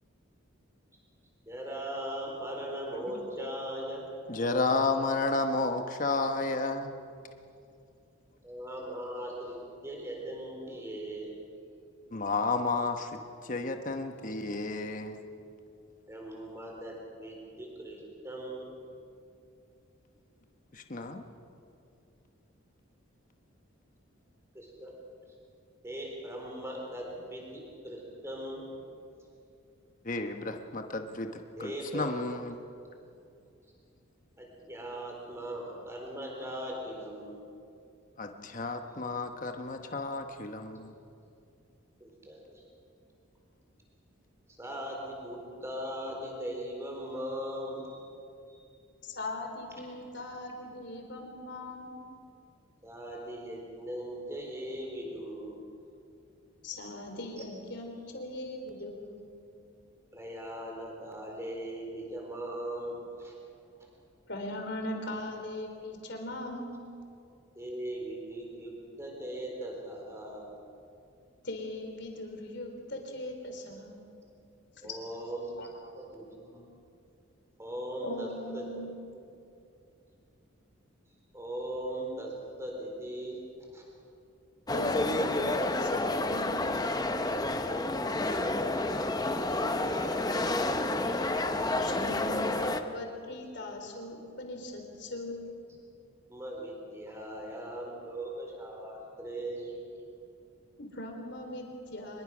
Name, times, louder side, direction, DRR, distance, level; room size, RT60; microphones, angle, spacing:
voice 1, 1.5-4.1 8.4-9.6 9.8-11.4 16.1-18.7 24.5-24.9 25.8-28.7 31.6-32.1 34.4-37.4 42.0-42.6 44.6-48.1 48.5-48.6 52.8-55.6 57.4-57.5 60.1-63.3 67.5-70.5 74.8-75.5 75.9-76.7 77.6-78.8 81.3-83.4 83.7-83.8 87.4-90.7 96.3-99.8, right 1 dB, 15° right, -1 dB, 4.0 m, -39 dB
voice 2, 4.3-6.9 12.1-13.1 13.4-15.1 20.7-21.2 30.0-31.3 31.6-32.5 38.2-40.9, left 3 dB, 40° left, 5 dB, 1.1 m, -31 dB
voice 3, 49.0-52.0 56.6-59.3 64.3-66.7 71.4-74.0 74.8-75.0 75.6-75.7 78.0-79.0 84.7-86.7 91.8-95.5 100.8-102.2, left 1 dB, 55° left, 3 dB, 3.5 m, -39 dB
sound 1, 84.7-92.8, left 2 dB, 20° left, 0.8 m, -30 dB
24.5 x 21.5 x 6.1 m, 2.5 s
head